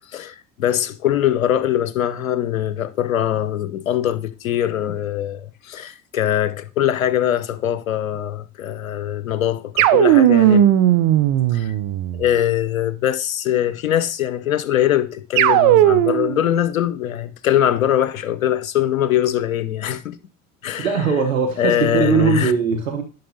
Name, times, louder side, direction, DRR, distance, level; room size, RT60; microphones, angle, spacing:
voice 1, 0.1-10.7 11.5-11.7 12.1-20.2 20.6-20.9 21.6-22.5, left 11 dB, 85° left, 0.6 m, -22 dB
sound 1, 9.8-12.3 15.3-16.4, right 12 dB, 60° right, 0.6 m, -15 dB
voice 2, 20.8-23.0, right 5 dB, 90° right, 0.9 m, -20 dB
10.5 x 5.3 x 2.7 m
hypercardioid pair, 65°, 40 cm